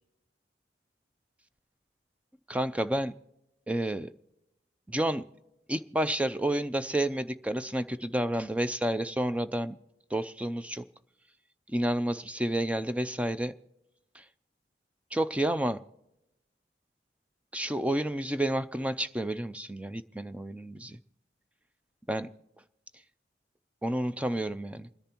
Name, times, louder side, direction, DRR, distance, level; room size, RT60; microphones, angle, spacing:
voice 1, 2.5-3.1 3.7-4.1 4.9-5.2 5.7-9.8 10.1-10.8 11.7-13.6 14.2-14.3 15.1-15.8 17.5-21.0 22.1-22.3 23.8-24.9, right 1 dB, 5° right, 11 dB, 0.4 m, -30 dB
28.5 x 10.5 x 2.9 m, 0.90 s
head